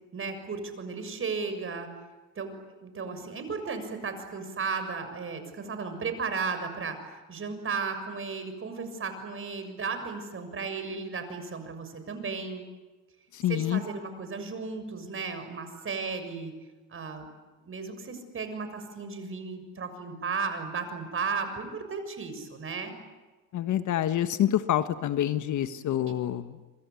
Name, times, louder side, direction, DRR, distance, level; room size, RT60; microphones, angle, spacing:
voice 1, 0.1-1.9 2.4-7.0 7.3-12.6 13.5-16.5 16.9-17.3 17.6-22.9 26.1-26.2, right 5 dB, 35° right, 8 dB, 6.9 m, -35 dB
voice 2, 13.3-13.8 23.5-26.5, left 11 dB, 50° left, 10 dB, 1.4 m, -27 dB
27.5 x 24.5 x 8.4 m, 1.2 s
supercardioid pair, 90°, 38 cm